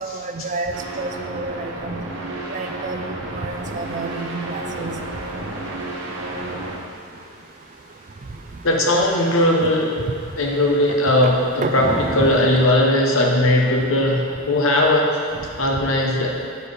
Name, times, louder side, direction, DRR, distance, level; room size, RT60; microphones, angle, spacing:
voice 1, 0.0-2.0 2.5-3.0 3.4-5.0 11.2-11.3 11.6-11.7, right 3 dB, 35° right, 5 dB, 0.3 m, -29 dB
sound 1, 0.7-6.8, right 2 dB, 65° right, 1.0 m, -31 dB
sound 2, 3.5-12.7, right 1 dB, 40° left, 1.4 m, -36 dB
voice 2, 8.6-9.9 10.4-11.3 11.7-11.9 12.1-15.1 15.6-16.3, left 1 dB, 70° left, 0 dB, 0.9 m, -18 dB
6.6 x 4.5 x 5.0 m, 2.2 s
head